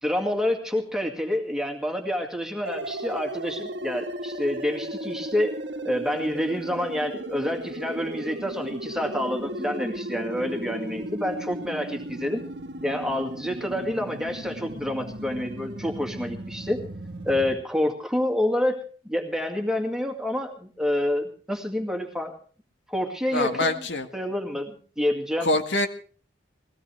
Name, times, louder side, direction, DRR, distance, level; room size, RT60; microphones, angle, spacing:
voice 1, 0.0-5.6 5.8-12.4 12.8-16.8 17.2-22.4 22.9-23.7 24.1-25.5, left 1 dB, 5° right, 3 dB, 2.1 m, -28 dB
sound 1, 2.6-17.5, right 1 dB, 60° right, 1.5 m, -36 dB
voice 2, 23.3-24.1 25.4-25.9, left 2 dB, 70° left, 6 dB, 1.7 m, -24 dB
21.0 x 17.5 x 3.4 m, 0.40 s
head